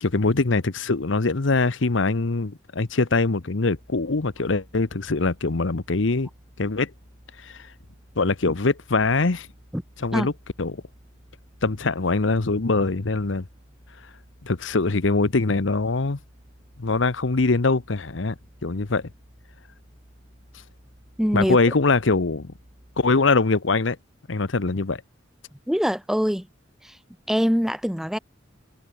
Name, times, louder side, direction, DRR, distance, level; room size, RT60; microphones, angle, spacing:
voice 1, 0.0-6.3 6.6-6.9 7.4-7.7 8.2-9.5 10.0-10.3 10.6-10.8 11.6-13.4 14.4-16.2 16.8-18.3 18.6-19.1 21.3-22.5 23.0-24.0 24.3-25.0, left 3 dB, 70° left, 1.0 m, -23 dB
sound 1, 3.7-23.4, equal, 40° right, 6.5 m, -53 dB
voice 2, 21.2-21.6 25.7-26.5 26.8-26.9 27.3-28.2, equal, ahead, 0.9 m, -23 dB
head